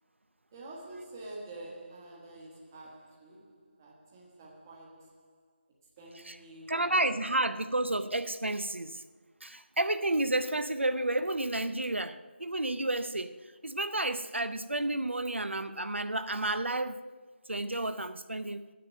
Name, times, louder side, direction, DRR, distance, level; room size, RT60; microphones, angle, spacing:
voice 1, 0.5-5.6 6.0-7.4, right 2 dB, 15° right, 1.2 m, -48 dB
voice 2, 6.7-9.0 9.4-17.0 17.5-18.7, right 2 dB, 90° right, 0.6 m, -31 dB
7.8 x 6.7 x 7.4 m
figure-of-eight pair, 165°, 6 cm